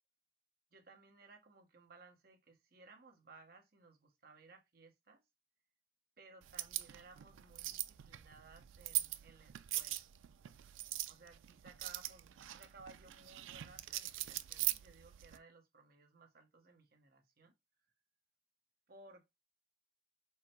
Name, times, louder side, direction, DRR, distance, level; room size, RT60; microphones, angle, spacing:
voice 1, 0.7-5.2 6.2-10.1 11.1-17.5 18.9-19.3, right 3 dB, 50° right, 1.0 m, -60 dB
sound 1, 6.4-15.4, right 15 dB, 85° right, 0.4 m, -42 dB
4.7 x 2.1 x 4.4 m
head